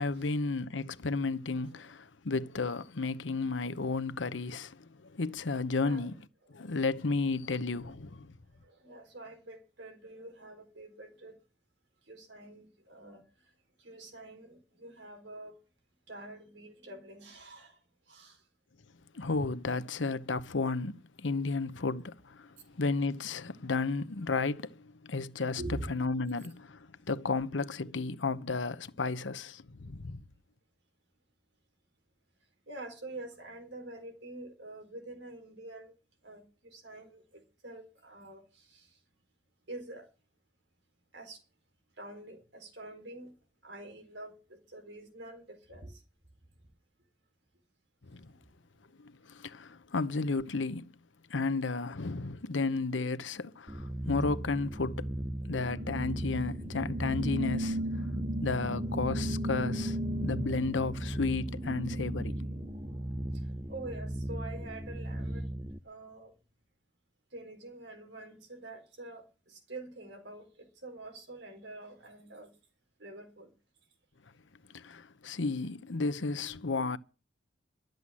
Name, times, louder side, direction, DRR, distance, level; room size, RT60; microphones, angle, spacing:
voice 1, 0.0-6.2 6.5-8.3 19.1-30.2 48.1-48.3 49.0-50.9 51.3-55.1 55.4-58.0 58.4-60.0 60.2-62.3 74.7-77.0, left 3 dB, 85° left, 0.9 m, -33 dB
voice 2, 5.8-6.1 8.6-11.4 12.1-13.2 13.8-15.6 16.1-17.8 18.1-18.4 25.6-25.9 32.7-35.9 36.2-39.0 39.7-40.1 41.1-41.4 42.0-43.4 43.6-46.0 63.7-65.5 65.8-66.3 67.3-72.5 73.0-73.5, right 2 dB, 65° right, 4.1 m, -46 dB
sound 1, 53.7-65.8, right 1 dB, 15° right, 0.6 m, -37 dB
sound 2, 55.7-63.5, right 1 dB, 40° right, 2.5 m, -37 dB
12.5 x 7.9 x 9.8 m
head